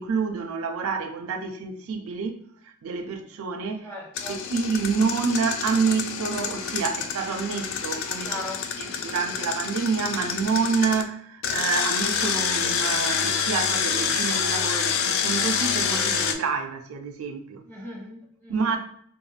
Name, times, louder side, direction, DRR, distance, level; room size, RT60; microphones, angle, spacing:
voice 1, 0.0-2.4 2.6-3.9 4.3-8.4 8.8-17.6 18.5-18.8, right 5 dB, 75° right, 0.4 m, -28 dB
voice 2, 3.8-4.4 8.2-9.0 17.7-18.8, left 1 dB, 10° left, 0.7 m, -38 dB
Engine, 4.1-11.0 11.4-16.3, left 7 dB, 65° left, 0.3 m, -27 dB
2.4 x 2.1 x 3.1 m
head